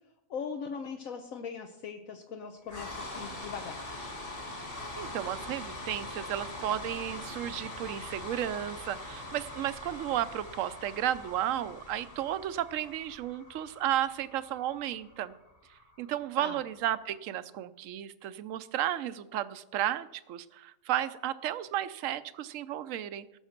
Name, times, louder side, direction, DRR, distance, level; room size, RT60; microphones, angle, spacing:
voice 1, 0.3-4.2 16.4-16.6, left 6 dB, 75° left, 4 dB, 1.3 m, -40 dB
sound 1, 2.7-16.8, left 2 dB, 40° left, 2.2 m, -43 dB
voice 2, 5.0-15.3 16.0-23.3, right 12 dB, 70° right, 14 dB, 1.0 m, -33 dB
19.0 x 6.4 x 5.9 m, 0.94 s
omnidirectional pair, 1.5 m